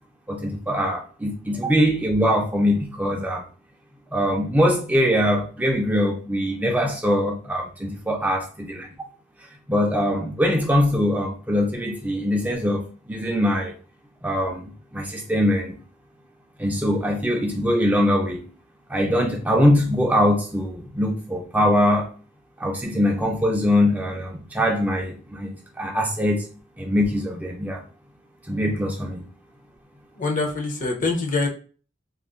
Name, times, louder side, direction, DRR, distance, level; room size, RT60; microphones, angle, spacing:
voice 1, 0.3-3.4 4.1-8.9 9.7-13.7 14.2-15.8 16.6-18.4 18.9-22.1 22.6-26.5 26.8-27.8 28.5-29.2, equal, 10° right, 0.4 m, -22 dB
voice 2, 30.2-31.5, left 3 dB, 40° left, 0.6 m, -24 dB
2.4 x 2.0 x 3.5 m
head